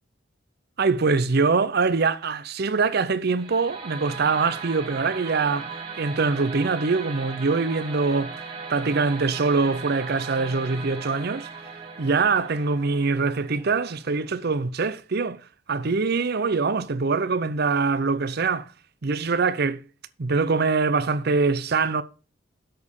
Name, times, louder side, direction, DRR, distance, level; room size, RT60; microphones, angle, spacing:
voice 1, 0.8-5.7 6.0-8.3 8.7-11.5 12.0-15.4 15.7-18.7 19.0-19.8 20.2-22.0, right 4 dB, 50° right, 0.6 m, -23 dB
sound 1, 3.3-14.4, right 4 dB, 25° right, 2.2 m, -38 dB
7.8 x 6.4 x 6.9 m
head